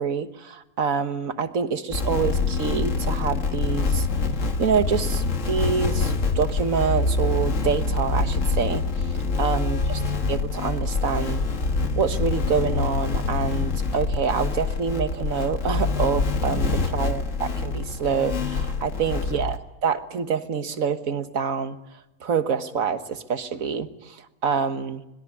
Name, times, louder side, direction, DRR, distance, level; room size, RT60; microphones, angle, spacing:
voice 1, 0.0-4.1 4.6-10.0 10.3-11.4 12.0-21.8 22.2-24.2 24.4-25.0, right 6 dB, 65° right, 9 dB, 1.7 m, -26 dB
sound 1, 1.9-19.6, left 3 dB, 55° left, 1.9 m, -25 dB
25.0 x 21.5 x 9.7 m, 0.96 s
omnidirectional pair, 1.6 m